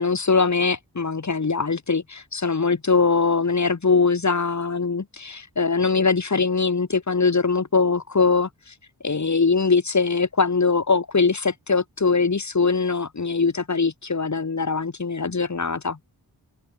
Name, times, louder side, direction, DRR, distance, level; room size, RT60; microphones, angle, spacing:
voice 1, 0.0-8.7 9.0-16.0, left 4 dB, 45° left, 5.8 m, -22 dB
wide cardioid pair, 135°, 40 cm